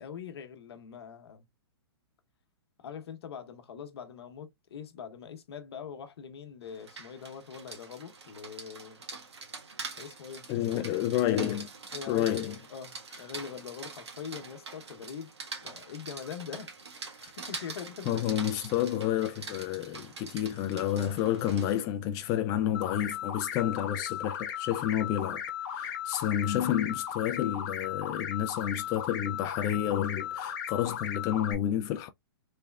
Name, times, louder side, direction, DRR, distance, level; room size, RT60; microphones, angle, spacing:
voice 1, 0.0-1.4 2.8-9.0 10.0-10.8 11.9-15.3 15.6-16.7 17.0-18.3 24.7-24.8, left 7 dB, 70° left, 0.9 m, -43 dB
Rain, 6.7-21.8, right 4 dB, 85° right, 1.4 m, -44 dB
voice 2, 10.5-11.7 12.1-12.5 17.5-17.6 18.1-32.1, left 11 dB, 25° left, 0.3 m, -30 dB
sound 1, 22.7-31.5, left 9 dB, 45° left, 0.9 m, -36 dB
3.5 x 3.2 x 2.3 m
hypercardioid pair, 135°, 14 cm